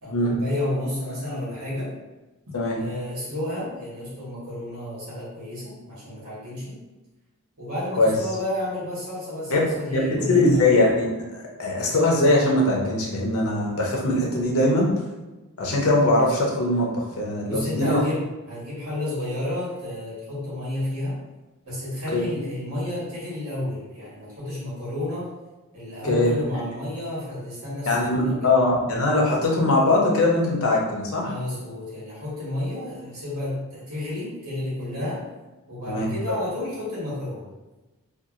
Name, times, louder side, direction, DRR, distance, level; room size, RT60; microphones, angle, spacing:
voice 1, 0.0-1.9 2.8-6.8 7.6-10.7 17.4-21.2 21.6-25.3 25.7-28.5 31.2-35.2 35.7-37.5, left 1 dB, 80° right, -8 dB, 1.4 m, -31 dB
voice 2, 9.5-14.9 15.6-18.0 22.1-22.2 26.1-26.3 27.9-31.3 35.9-36.1, left 2 dB, 70° left, -2 dB, 0.7 m, -21 dB
2.7 x 2.4 x 2.4 m, 1.1 s
head